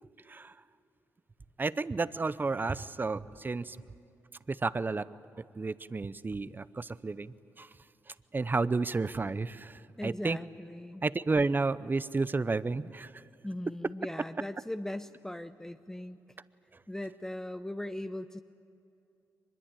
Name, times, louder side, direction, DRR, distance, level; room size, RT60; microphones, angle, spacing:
voice 1, 1.6-3.8 4.5-5.1 5.4-7.7 8.1-10.4 11.0-13.2, right 3 dB, 30° right, 16 dB, 0.7 m, -32 dB
voice 2, 10.0-11.0 13.4-16.2 16.9-18.4, left 1 dB, 10° left, 9 dB, 0.7 m, -39 dB
23.5 x 21.5 x 9.1 m, 2.6 s
supercardioid pair, 60°, 7 cm